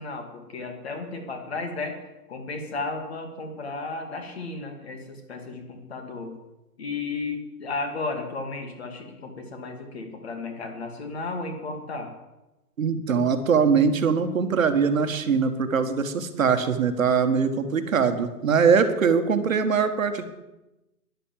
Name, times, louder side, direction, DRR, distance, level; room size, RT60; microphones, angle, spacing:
voice 1, 0.0-2.0 2.3-6.4 6.8-12.1, left 3 dB, 40° left, 5 dB, 2.4 m, -34 dB
voice 2, 12.8-20.2, right 6 dB, 55° right, 8 dB, 1.6 m, -22 dB
11.5 x 10.5 x 7.4 m, 0.99 s
hypercardioid pair, 175°, 48 cm